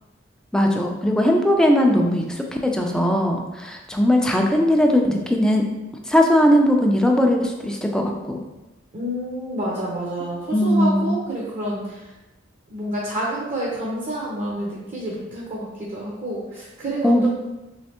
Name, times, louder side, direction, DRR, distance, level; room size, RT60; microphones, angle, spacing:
voice 1, 0.5-5.6 6.1-8.4 10.5-11.2 17.0-17.3, equal, 5° left, 2 dB, 0.3 m, -19 dB
voice 2, 8.9-12.0 12.7-17.3, right 1 dB, 40° right, -5 dB, 0.6 m, -28 dB
3.3 x 3.2 x 2.8 m, 1.0 s
head